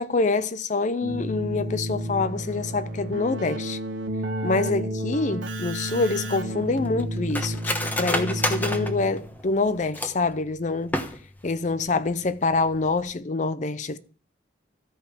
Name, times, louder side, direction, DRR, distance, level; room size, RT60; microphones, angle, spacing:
voice 1, 0.0-3.8 4.4-10.9 11.4-14.0, left 3 dB, 40° left, 0.5 m, -26 dB
Keyboard (musical), 1.0-9.4, right 1 dB, 80° right, 1.5 m, -31 dB
Cutlery silverware, 5.9-10.3 10.8-11.5 11.8-11.9 12.2-12.6 12.9-13.1, left 1 dB, 10° left, 1.1 m, -30 dB
13.5 x 5.5 x 7.3 m
head